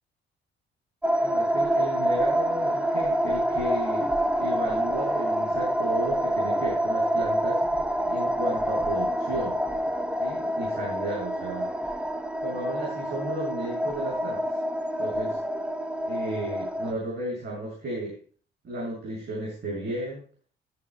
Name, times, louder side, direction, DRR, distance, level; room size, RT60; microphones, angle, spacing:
sound 1, 1.0-16.9, equal, 5° right, 0.8 m, -27 dB
voice 1, 1.2-4.1 4.3-7.6 8.0-9.6 10.2-11.7 12.4-14.5 15.0-15.4 16.0-18.2 18.6-20.2, right 1 dB, 60° right, -5 dB, 6.4 m, -34 dB
14.0 x 12.0 x 2.2 m, 0.39 s
cardioid pair, 90°, 20 cm